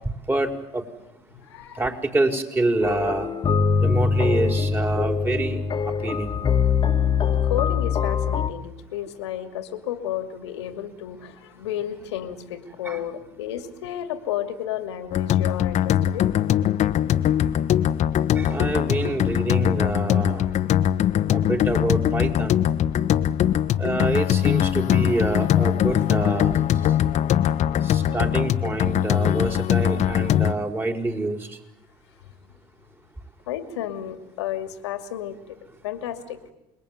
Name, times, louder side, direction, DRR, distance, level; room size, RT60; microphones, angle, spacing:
voice 1, 0.3-0.8 1.8-3.3 3.8-5.6 5.9-6.4 12.8-13.0 18.3-20.5 21.3-22.7 23.8-27.0 27.8-31.6, right 2 dB, 15° right, 5 dB, 5.3 m, -26 dB
voice 2, 1.3-1.8 7.4-16.3 33.5-35.6 35.8-36.4, left 11 dB, 90° left, 8 dB, 2.5 m, -32 dB
sound 1, 2.8-8.5, left 6 dB, 35° left, 2.0 m, -23 dB
sound 2, 15.1-30.5, left 11 dB, 55° left, 1.4 m, -21 dB
28.5 x 21.5 x 9.5 m, 0.95 s
hypercardioid pair, 80°, 14 cm